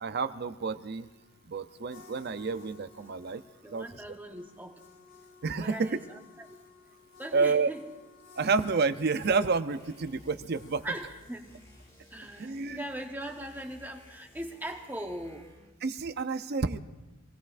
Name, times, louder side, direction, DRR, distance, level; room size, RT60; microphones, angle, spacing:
voice 1, 0.0-1.1 1.5-3.4 3.7-3.9 5.4-6.0 7.3-7.7 8.4-10.8 12.4-12.8 15.8-16.8, right 4 dB, 50° right, 11 dB, 0.6 m, -29 dB
sound 1, 0.9-13.4, left 5 dB, 80° left, 3.1 m, -57 dB
voice 2, 3.6-4.8 5.6-6.2 7.2-7.8 10.8-11.5 12.1-15.5, right 1 dB, 10° right, 3 dB, 1.1 m, -40 dB
sound 2, 9.7-15.8, equal, 15° left, 1.5 m, -56 dB
25.0 x 18.0 x 2.5 m, 1.1 s
head